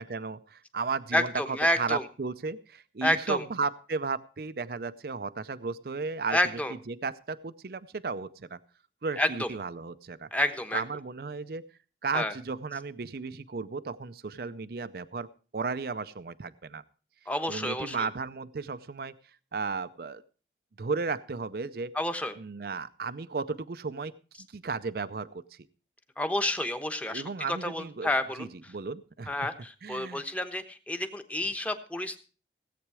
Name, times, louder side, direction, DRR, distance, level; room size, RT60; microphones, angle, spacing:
voice 1, 0.0-6.4 6.9-8.6 9.0-10.3 10.7-11.7 12.0-16.8 17.5-19.1 19.5-20.2 20.8-21.9 22.4-25.6 27.1-28.1 28.4-29.3 29.8-30.2, right 4 dB, 55° right, 13 dB, 0.5 m, -34 dB
voice 2, 1.1-2.0 3.0-3.4 6.3-6.7 9.2-9.5 10.3-10.8 12.1-12.3 17.3-18.1 21.9-22.3 26.2-28.5 29.3-32.2, left 1 dB, 10° left, 7 dB, 1.0 m, -29 dB
17.0 x 8.5 x 4.8 m, 0.37 s
head